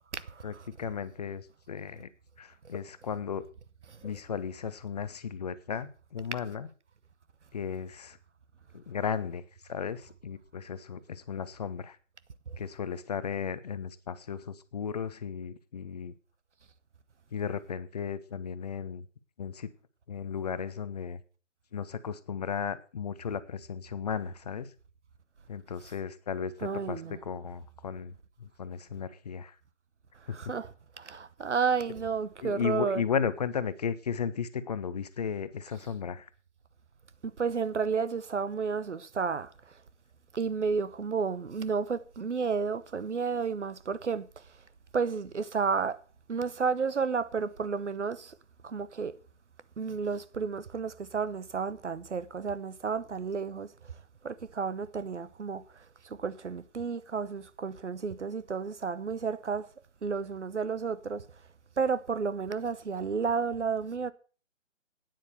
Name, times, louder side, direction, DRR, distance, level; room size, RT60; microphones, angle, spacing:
voice 1, 0.1-0.7 3.9-4.1 12.5-12.6 26.6-27.2 30.2-33.0 37.2-39.7 40.3-44.4 44.9-46.0 46.3-48.4 48.6-49.1 49.8-53.9 54.2-59.7 60.0-61.2 61.8-64.1, right 5 dB, 70° right, 0.9 m, -32 dB
voice 2, 0.8-2.1 2.4-3.4 4.0-6.7 7.5-8.2 8.7-9.4 9.7-12.0 12.6-16.1 17.3-19.1 19.4-19.7 20.1-21.2 21.7-24.7 25.5-29.5 30.3-30.4 32.4-36.3, left 7 dB, 35° left, 0.7 m, -35 dB
9.4 x 8.4 x 6.6 m
figure-of-eight pair, 135°, 37 cm